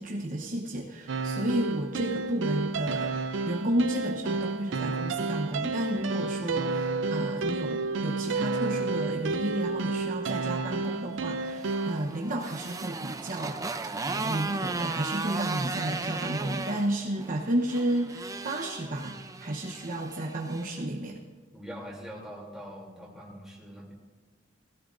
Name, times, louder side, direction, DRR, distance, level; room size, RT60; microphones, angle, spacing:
voice 1, 0.0-13.6 13.8-19.2 19.4-21.2, right 1 dB, 45° right, -1 dB, 1.0 m, -32 dB
sound 1, 1.1-12.0, right 3 dB, 90° right, 0.5 m, -31 dB
Motorcycle, 11.3-20.7, right 3 dB, 20° right, 0.5 m, -36 dB
voice 2, 21.5-23.9, equal, 5° right, -4 dB, 3.1 m, -43 dB
17.0 x 16.0 x 2.6 m, 1.3 s
head